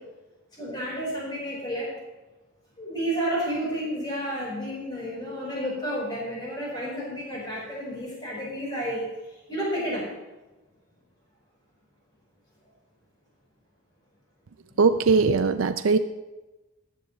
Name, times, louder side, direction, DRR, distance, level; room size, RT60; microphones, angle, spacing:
voice 1, 0.5-1.9 2.8-9.0 9.5-10.0, equal, 20° left, -5 dB, 4.5 m, -31 dB
voice 2, 14.8-16.0, right 4 dB, 85° right, 9 dB, 0.5 m, -20 dB
16.0 x 12.0 x 3.1 m, 1.1 s
head